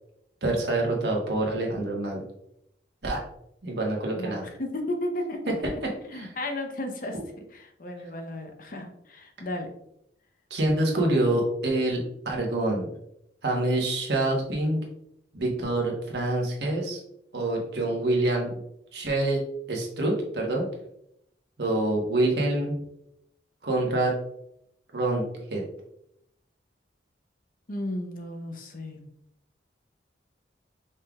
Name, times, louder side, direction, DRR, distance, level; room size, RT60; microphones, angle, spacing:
voice 1, 0.4-2.2 3.0-3.2 3.6-4.4 6.1-6.3 10.5-12.9 13.4-14.8 15.3-17.0 17.3-18.5 18.9-19.4 19.7-20.6 21.6-22.7 23.6-24.1 24.9-25.2 25.5-25.6, right 2 dB, 65° right, -1 dB, 1.2 m, -26 dB
voice 2, 4.2-5.5 6.1-7.2 7.5-9.7 27.7-29.0, left 1 dB, 50° left, 4 dB, 0.7 m, -34 dB
5.4 x 3.7 x 2.3 m, 0.76 s
head